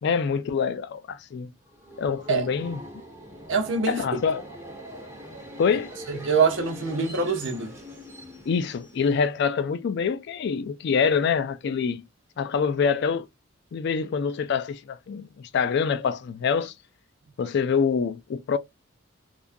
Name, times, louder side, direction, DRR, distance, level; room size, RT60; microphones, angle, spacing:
voice 1, 0.0-1.5 2.0-2.8 3.9-4.4 5.6-5.9 8.5-12.1 12.4-13.3 13.7-16.7 17.4-18.6, left 6 dB, 60° left, 0.3 m, -25 dB
Subway metro underground, 1.6-9.4, equal, 15° right, 1.0 m, -43 dB
voice 2, 3.5-4.0 6.1-7.7, right 5 dB, 65° right, 0.8 m, -24 dB
2.3 x 2.3 x 2.5 m
head